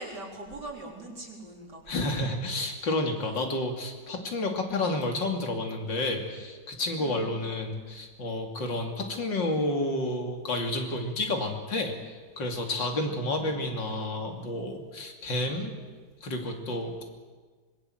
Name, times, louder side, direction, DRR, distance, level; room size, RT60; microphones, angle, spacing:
voice 1, 0.0-2.2 7.0-7.4 12.9-13.8, right 2 dB, 70° right, -1 dB, 4.9 m, -42 dB
voice 2, 1.9-15.7 16.2-17.0, left 2 dB, 85° left, 3 dB, 3.5 m, -30 dB
25.0 x 21.0 x 8.0 m, 1.5 s
omnidirectional pair, 1.9 m